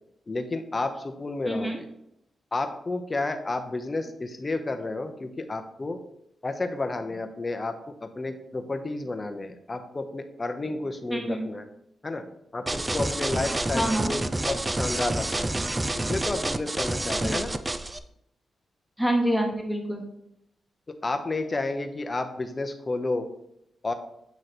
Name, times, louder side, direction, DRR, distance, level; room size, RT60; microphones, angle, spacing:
voice 1, 0.3-1.8 2.5-6.0 6.4-11.6 12.0-15.5 15.9-17.5 21.0-23.3 23.8-23.9, left 2 dB, 30° left, 7 dB, 0.7 m, -31 dB
voice 2, 1.4-1.8 11.1-11.5 13.7-14.1 17.2-17.4 19.0-20.1, right 1 dB, ahead, 2 dB, 1.0 m, -27 dB
sound 1, 12.7-18.0, right 1 dB, 20° right, 0.4 m, -28 dB
7.9 x 3.1 x 4.1 m, 0.78 s
cardioid pair, 90°, 0 cm